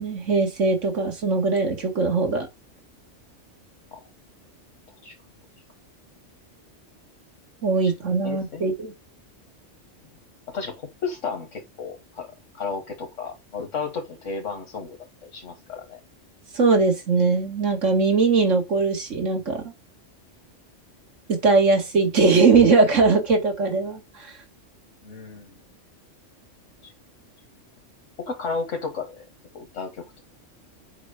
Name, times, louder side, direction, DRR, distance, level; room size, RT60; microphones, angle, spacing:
voice 1, 0.0-2.5 7.6-8.9 16.5-19.6 21.3-24.3, right 4 dB, 85° right, 2.4 m, -20 dB
voice 2, 8.2-8.6 10.5-12.3 12.5-16.0 25.0-25.6 26.8-26.9 28.3-29.2 29.5-30.0, left 4 dB, 80° left, 1.9 m, -33 dB
7.4 x 4.6 x 5.1 m
omnidirectional pair, 1.2 m